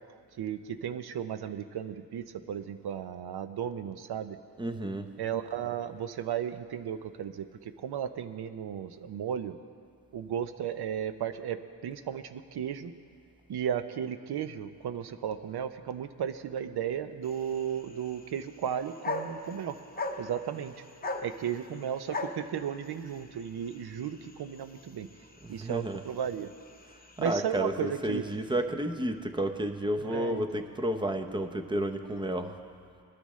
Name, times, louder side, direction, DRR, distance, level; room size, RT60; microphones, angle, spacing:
voice 1, 0.4-4.4 5.2-9.6 10.1-12.9 13.5-19.8 20.2-20.8 21.2-25.1 25.5-26.5 27.2-28.3 30.0-30.6, right 9 dB, 60° right, 11 dB, 0.7 m, -35 dB
voice 2, 4.6-5.1 25.4-26.0 27.2-32.6, right 1 dB, 10° right, 7 dB, 0.7 m, -31 dB
sound 1, 17.2-27.6, left 3 dB, 20° left, 0.8 m, -42 dB
20.0 x 12.0 x 3.2 m, 2.2 s
cardioid pair, 110°, 44 cm